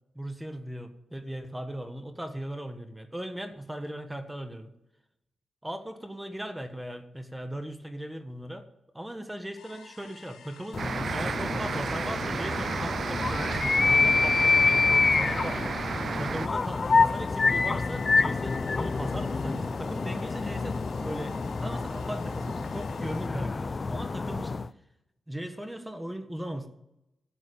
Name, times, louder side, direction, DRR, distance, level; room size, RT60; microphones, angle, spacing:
voice 1, 0.1-4.7 5.6-8.7 8.9-10.8 11.1-15.6 16.2-24.6 25.3-26.7, right 1 dB, 10° right, 8 dB, 1.5 m, -38 dB
sound 1, 9.6-23.3, left 8 dB, 90° left, 1.0 m, -51 dB
sound 2, 10.7-24.7, left 4 dB, 45° left, 0.5 m, -27 dB
sound 3, 10.8-16.5, right 6 dB, 65° right, 0.4 m, -33 dB
11.5 x 8.5 x 7.0 m, 0.87 s
cardioid pair, 55°, 0 cm